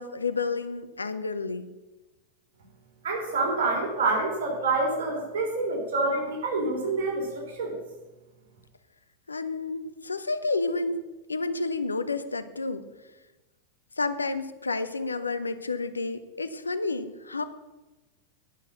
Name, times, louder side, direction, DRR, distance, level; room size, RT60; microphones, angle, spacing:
voice 1, 0.0-1.7 9.3-11.0 11.3-12.9 14.0-17.4, left 3 dB, 80° left, 12 dB, 0.6 m, -30 dB
voice 2, 3.0-7.8, right 3 dB, 60° right, 0 dB, 3.4 m, -27 dB
10.5 x 6.3 x 6.7 m, 1.1 s
figure-of-eight pair, 90°, 0 cm